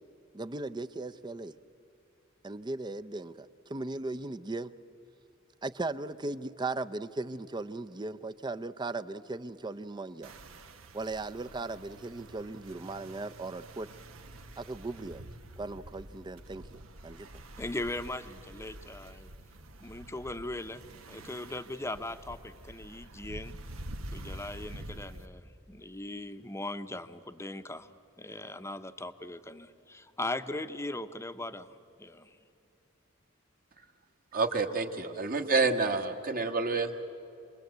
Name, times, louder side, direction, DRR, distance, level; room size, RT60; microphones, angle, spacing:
voice 1, 0.3-1.5 2.4-4.7 5.6-10.4 10.9-13.9 14.6-15.2 15.6-17.3, right 2 dB, 20° right, 12 dB, 0.6 m, -37 dB
sound 1, 10.2-25.3, right 1 dB, 80° right, 1.3 m, -47 dB
voice 2, 17.6-19.3 19.8-23.5 24.1-27.9 28.2-32.4, left 2 dB, 15° left, 10 dB, 0.8 m, -39 dB
voice 3, 34.3-37.1, right 3 dB, 45° right, 6 dB, 1.5 m, -28 dB
26.5 x 21.5 x 8.0 m, 2.7 s
head